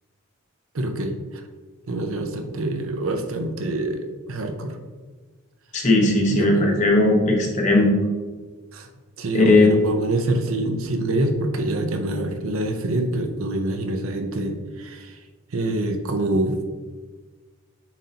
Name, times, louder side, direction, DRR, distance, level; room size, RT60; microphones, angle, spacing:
voice 1, 0.7-1.2 1.9-4.8 6.3-6.7 8.7-8.9 9.2-15.2 15.5-16.6, right 1 dB, 70° right, 5 dB, 0.7 m, -26 dB
voice 2, 5.7-7.9 9.3-9.8, left 2 dB, 35° left, 1 dB, 1.0 m, -17 dB
7.1 x 5.4 x 2.8 m, 1.4 s
head